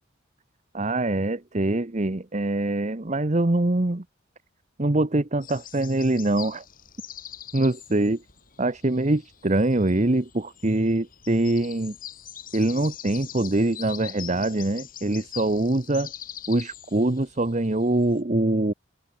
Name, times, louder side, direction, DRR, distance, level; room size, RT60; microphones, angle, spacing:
voice 1, 0.7-4.0 4.8-6.6 7.5-8.2 8.6-11.9 12.5-16.1 16.5-18.7, right 2 dB, 35° right, 1.0 m, -24 dB
sound 1, 5.4-18.2, left 11 dB, 45° left, 5.4 m, -43 dB
open air
head